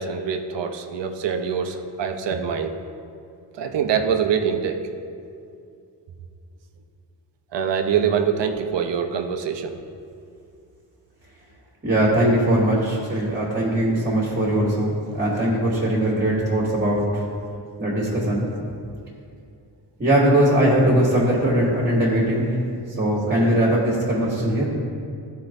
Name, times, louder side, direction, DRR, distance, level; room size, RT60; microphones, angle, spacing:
voice 1, 0.0-2.8 3.6-4.9 7.5-9.8, right 7 dB, 80° right, 6 dB, 0.7 m, -24 dB
voice 2, 11.8-17.2 17.8-18.5 20.0-22.6 22.9-24.7, right 1 dB, 25° right, -6 dB, 1.5 m, -20 dB
13.5 x 4.7 x 2.6 m, 2.5 s
wide cardioid pair, 145°, 42 cm